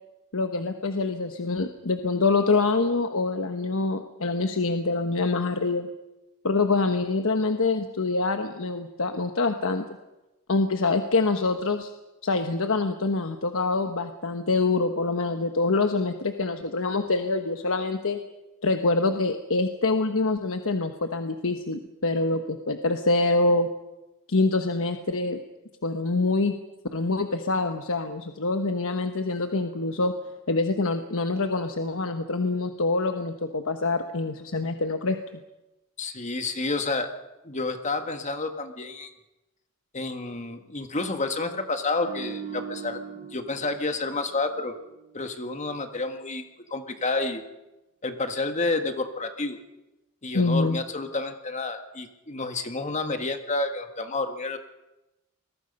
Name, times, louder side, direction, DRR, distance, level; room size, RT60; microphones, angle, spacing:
voice 1, 0.3-5.9 6.4-9.8 10.5-11.9 12.2-18.2 18.6-23.7 24.3-25.4 25.8-26.6 26.9-30.1 30.5-35.2 50.3-50.8, left 3 dB, 65° left, 6 dB, 1.2 m, -25 dB
voice 2, 36.0-37.1 37.4-39.1 39.9-44.7 45.1-46.4 46.7-47.4 48.0-49.6 50.2-54.6, left 3 dB, 35° left, 7 dB, 1.7 m, -30 dB
sound 1, 42.0-45.3 45.6-45.8, right 7 dB, 35° right, 4.8 m, -41 dB
29.0 x 21.5 x 5.4 m, 1.0 s
head